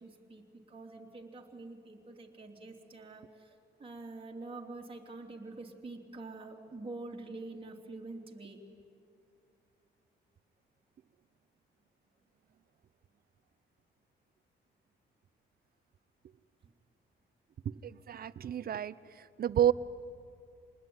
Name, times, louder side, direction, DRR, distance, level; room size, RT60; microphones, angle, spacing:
voice 1, 0.0-3.5 3.8-8.6, right 2 dB, 25° right, 1 dB, 3.3 m, -46 dB
voice 2, 17.8-18.9 19.4-19.7, right 11 dB, 50° right, 17 dB, 0.8 m, -29 dB
27.5 x 20.5 x 9.7 m, 2.5 s
cardioid pair, 90°, 20 cm